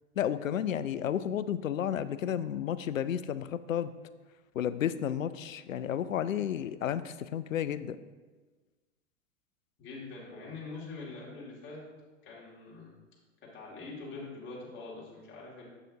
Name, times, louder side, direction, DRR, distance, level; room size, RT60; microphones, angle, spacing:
voice 1, 0.2-3.9 4.6-8.0, left 10 dB, 85° left, 15 dB, 0.5 m, -32 dB
voice 2, 9.8-11.8 12.2-12.9 13.4-15.7, left 3 dB, 30° left, -4 dB, 2.4 m, -44 dB
8.0 x 7.3 x 2.8 m, 1.3 s
hypercardioid pair, 110°, 39 cm